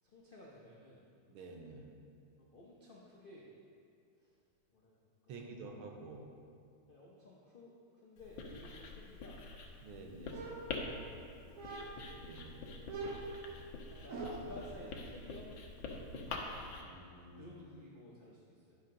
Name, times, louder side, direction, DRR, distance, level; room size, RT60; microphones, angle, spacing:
voice 1, 0.0-1.0 2.4-3.5 4.2-4.4 4.7-5.0 5.2-5.7 6.9-9.5 10.3-10.9 12.4-12.8 13.4-15.5 17.3-18.8, left 2 dB, 85° left, -5 dB, 0.4 m, -55 dB
voice 2, 1.3-1.9 5.3-6.2 9.8-10.4 12.1-12.6 16.8-17.5, right 3 dB, 80° right, 2 dB, 1.7 m, -50 dB
Writing, 8.2-16.8, left 3 dB, 65° left, 1.5 m, -46 dB
sound 1, 10.3-11.2 11.6-12.2 12.9-14.6, right 3 dB, 65° right, 0.8 m, -44 dB
10.5 x 5.7 x 3.7 m, 2.3 s
omnidirectional pair, 2.3 m